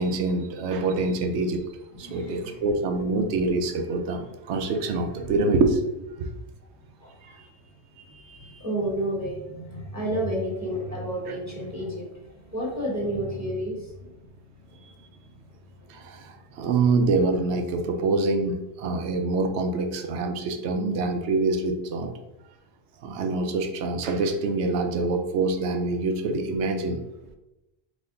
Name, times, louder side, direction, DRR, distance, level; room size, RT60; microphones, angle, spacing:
voice 1, 0.0-1.6 2.0-6.3 7.2-7.5 8.0-8.6 15.9-22.1 23.0-27.0, right 3 dB, 80° right, 5 dB, 0.9 m, -26 dB
voice 2, 2.0-2.6 3.0-3.1 7.0-7.4 8.3-14.3 14.6-16.3, right 1 dB, 15° right, -4 dB, 0.9 m, -32 dB
4.1 x 2.9 x 3.7 m, 0.94 s
omnidirectional pair, 1.1 m